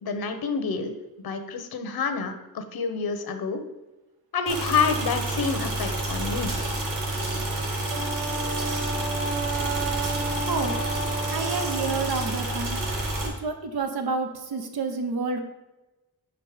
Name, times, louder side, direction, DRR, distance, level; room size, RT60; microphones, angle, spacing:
voice 1, 0.0-3.6 4.3-6.5, left 5 dB, 80° left, 8 dB, 0.8 m, -28 dB
sound 1, 4.5-13.3, right 2 dB, 65° right, 1.8 m, -29 dB
Wind instrument woodwind instrument, 7.9-12.1, right 3 dB, 40° right, 0.7 m, -32 dB
voice 2, 10.5-10.8 11.3-12.8 13.2-15.4, right 4 dB, 90° right, 5 dB, 0.8 m, -29 dB
5.2 x 4.9 x 4.9 m, 1.0 s
wide cardioid pair, 135°, 36 cm